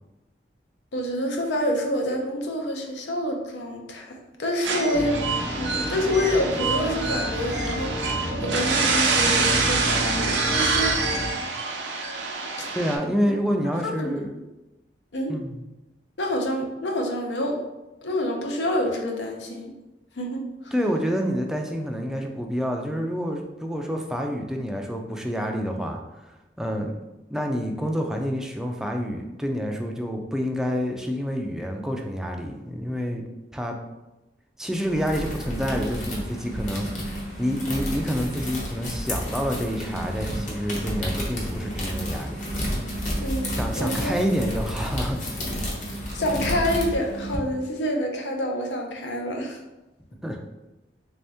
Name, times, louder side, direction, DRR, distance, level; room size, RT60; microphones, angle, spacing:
voice 1, 0.9-5.2 5.6-11.0 11.3-11.4 12.6-12.7 13.8-14.2 15.1-15.4 16.2-17.6 18.0-19.7 20.2-20.7 43.2-44.1 46.1-49.6, left 1 dB, 80° left, 2 dB, 0.6 m, -27 dB
sound 1, 4.6-13.0, right 4 dB, 85° right, 0.5 m, -26 dB
sound 2, 4.9-11.3, equal, 15° left, 0.7 m, -31 dB
voice 2, 12.7-14.3 15.3-15.6 20.7-26.9 27.3-33.3 33.5-33.8 34.6-42.4 43.6-45.2 45.5-45.7 50.2-50.4, equal, 5° right, 2 dB, 0.3 m, -28 dB
sound 3, 34.7-47.4, equal, 45° left, 0.8 m, -31 dB
3.4 x 2.7 x 3.4 m, 1.0 s
head